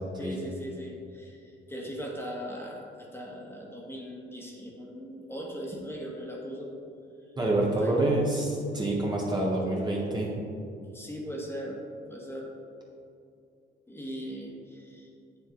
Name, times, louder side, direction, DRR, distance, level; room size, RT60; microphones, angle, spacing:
voice 1, 0.2-6.7 7.8-8.1 10.9-11.8 12.1-12.5 13.9-15.1, equal, 10° left, -2 dB, 1.7 m, -39 dB
voice 2, 7.4-10.3, right 2 dB, 20° right, -3 dB, 1.4 m, -27 dB
7.7 x 7.2 x 4.0 m, 2.5 s
cardioid pair, 90°, 20 cm